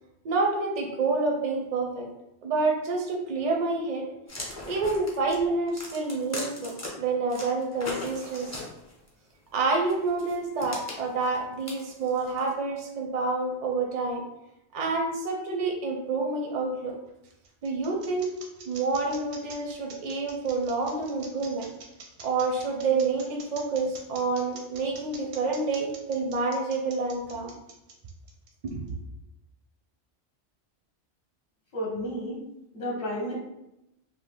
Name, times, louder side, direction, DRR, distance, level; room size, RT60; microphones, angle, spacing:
voice 1, 0.2-2.1 2.4-4.1 4.7-8.5 9.5-14.2 14.7-17.0 17.6-18.3 18.7-21.7 22.2-27.5 28.6-28.8, right 3 dB, 55° right, 1 dB, 0.5 m, -28 dB
sound 1, 4.3-6.9 7.3-9.1 9.9-12.5, left 2 dB, 20° left, 0.4 m, -39 dB
sound 2, 16.9-28.9, right 5 dB, 85° right, 0.9 m, -46 dB
voice 2, 31.7-32.4 32.7-33.4, equal, 45° left, -4 dB, 0.8 m, -32 dB
2.9 x 2.1 x 3.2 m, 0.88 s
omnidirectional pair, 1.1 m